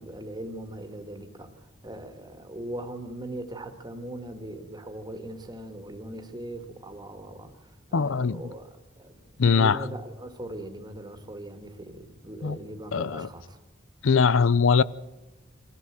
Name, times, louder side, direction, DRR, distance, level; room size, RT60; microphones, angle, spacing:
voice 1, 0.0-9.1 9.5-13.6, right 1 dB, 20° right, 1.9 m, -40 dB
voice 2, 7.9-8.4 9.4-9.8 12.4-12.6 12.9-13.3 14.0-14.8, left 5 dB, 90° left, 0.6 m, -21 dB
23.5 x 15.0 x 7.6 m
head